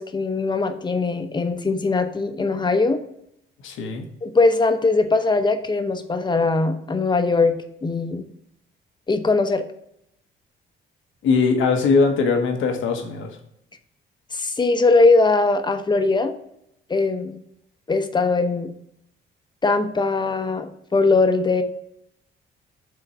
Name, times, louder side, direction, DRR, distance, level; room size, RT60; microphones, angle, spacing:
voice 1, 0.0-3.0 4.2-8.3 9.1-9.6 14.3-16.3 16.9-17.4 17.9-18.7 19.6-21.6, left 3 dB, 20° left, 8 dB, 0.7 m, -20 dB
voice 2, 3.6-4.1 11.2-13.4, left 4 dB, 80° left, 4 dB, 1.1 m, -20 dB
6.6 x 3.7 x 4.3 m, 0.76 s
cardioid pair, 90°, 20 cm